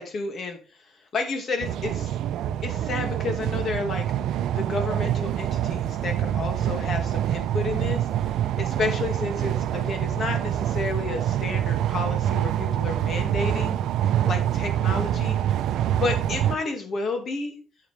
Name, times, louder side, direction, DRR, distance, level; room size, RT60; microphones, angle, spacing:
voice 1, 0.0-2.1 2.6-4.1 4.6-8.1 8.6-13.8 14.2-15.6 16.0-17.6, left 3 dB, 55° left, 5 dB, 2.1 m, -31 dB
sound 1, 1.6-16.6, right 11 dB, 85° right, 0.5 m, -26 dB
8.2 x 7.4 x 3.4 m, 0.38 s
cardioid pair, 90°, 0 cm